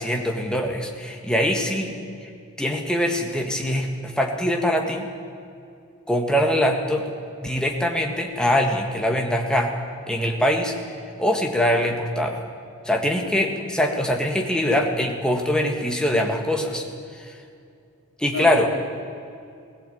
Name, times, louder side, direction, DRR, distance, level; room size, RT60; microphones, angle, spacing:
voice 1, 0.0-1.9 2.2-2.3 2.6-5.1 6.1-7.1 7.4-9.7 10.1-10.8 11.2-12.4 12.9-16.8 18.2-18.7, equal, 5° left, 1 dB, 1.7 m, -23 dB
voice 2, 13.2-13.6 18.3-18.8, left 3 dB, 70° left, 1 dB, 3.2 m, -36 dB
18.5 x 16.0 x 8.7 m, 2.4 s
head